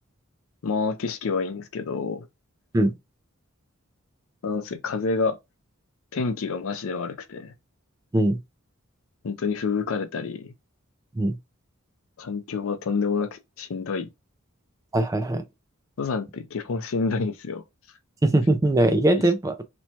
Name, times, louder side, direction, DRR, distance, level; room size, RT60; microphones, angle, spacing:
voice 1, 0.6-2.3 4.4-5.4 6.1-7.5 9.2-10.5 12.2-14.1 16.0-17.6, left 4 dB, 65° left, 0.5 m, -28 dB
voice 2, 14.9-15.4 18.2-19.6, right 1 dB, 15° right, 0.3 m, -21 dB
3.0 x 2.2 x 2.7 m
head